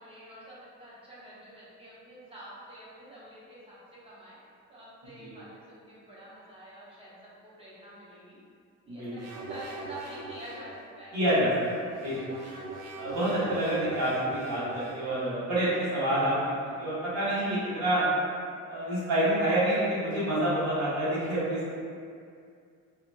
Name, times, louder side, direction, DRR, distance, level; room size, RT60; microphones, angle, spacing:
voice 1, 0.0-3.8 4.0-4.4 4.7-7.1 7.6-8.4 8.9-10.7 11.0-11.2 12.9-13.1, right 1 dB, 20° right, -8 dB, 0.9 m, -47 dB
sound 1, 9.2-10.8 11.5-15.2, right 2 dB, 55° right, 0.5 m, -42 dB
voice 2, 11.1-11.5 12.0-12.2 13.0-18.1 18.7-21.7, right 1 dB, 90° right, -10 dB, 1.3 m, -28 dB
2.9 x 2.7 x 2.3 m, 2.3 s
cardioid pair, 90°, 30 cm